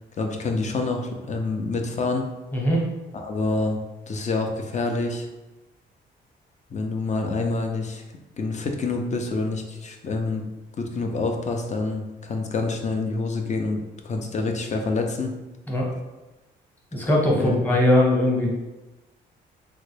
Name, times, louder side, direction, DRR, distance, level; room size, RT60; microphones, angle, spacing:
voice 1, 0.2-2.3 3.1-3.8 4.1-5.3 6.7-8.0 8.4-10.4 10.8-13.8 14.0-15.3 17.4-17.6, left 3 dB, 35° left, 3 dB, 0.5 m, -27 dB
voice 2, 2.5-2.8 15.7-15.9 16.9-18.5, left 1 dB, 10° left, -3 dB, 1.0 m, -20 dB
3.6 x 2.2 x 3.3 m, 1.1 s
cardioid pair, 90°, 20 cm